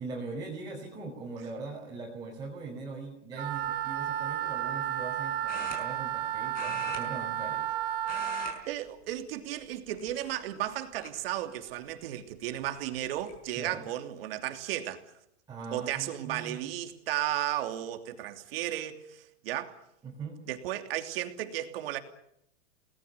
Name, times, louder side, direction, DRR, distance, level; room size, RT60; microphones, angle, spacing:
voice 1, 0.0-7.7 13.5-13.8 15.5-16.6 20.0-20.4, right 3 dB, 10° right, 5.6 m, -41 dB
Wind instrument woodwind instrument, 3.3-8.5, right 12 dB, 30° right, 4.2 m, -32 dB
sound 1, 3.5-3.8 5.5-6.2 6.5-7.7 8.0-8.6 8.9-9.1 9.9-10.5 11.0-11.1 12.6-12.7 13.0-13.4, left 5 dB, 25° left, 5.4 m, -42 dB
voice 2, 8.6-15.0 15.7-19.8 20.5-22.0, right 13 dB, 50° right, 3.0 m, -34 dB
30.0 x 19.5 x 7.0 m
hypercardioid pair, 155°, 36 cm